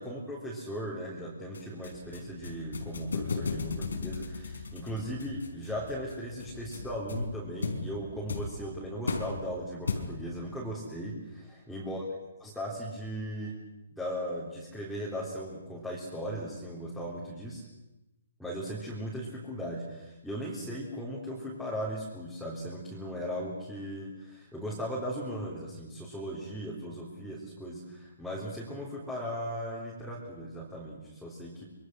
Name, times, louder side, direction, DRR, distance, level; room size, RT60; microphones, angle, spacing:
voice 1, 0.0-12.0 12.4-13.5 13.9-17.6 18.4-31.6, equal, ahead, -7 dB, 3.8 m, -37 dB
sound 1, 1.5-10.4, left 4 dB, 90° left, 4.7 m, -37 dB
26.0 x 23.0 x 6.4 m, 0.99 s
hypercardioid pair, 165°, 0 cm